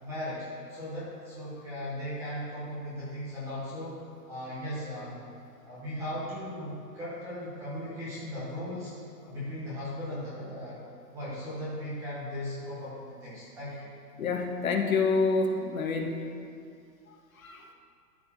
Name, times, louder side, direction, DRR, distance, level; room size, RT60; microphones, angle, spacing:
voice 1, 0.0-4.0 4.3-5.2 5.6-8.9 9.2-10.8 11.1-13.9, left 1 dB, 5° right, -10 dB, 0.9 m, -37 dB
voice 2, 14.2-16.2 17.4-17.7, left 4 dB, 55° left, 3 dB, 1.2 m, -27 dB
13.0 x 4.7 x 5.5 m, 2.4 s
hypercardioid pair, 165°, 48 cm